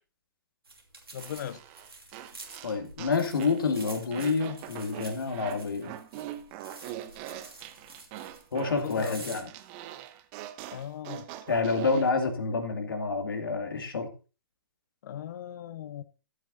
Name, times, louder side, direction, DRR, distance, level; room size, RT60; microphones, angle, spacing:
sound 1, 0.6-9.4, right 3 dB, 90° right, 2.7 m, -48 dB
voice 1, 1.1-1.6 8.8-9.4 10.7-11.3 15.0-16.0, left 10 dB, 50° left, 0.9 m, -38 dB
sound 2, 1.2-3.6 4.1-12.1, right 12 dB, 35° right, 1.0 m, -43 dB
voice 2, 2.6-5.9 8.5-9.5 11.5-14.1, left 4 dB, 70° left, 2.3 m, -28 dB
14.0 x 8.9 x 2.7 m
figure-of-eight pair, 125°, 12 cm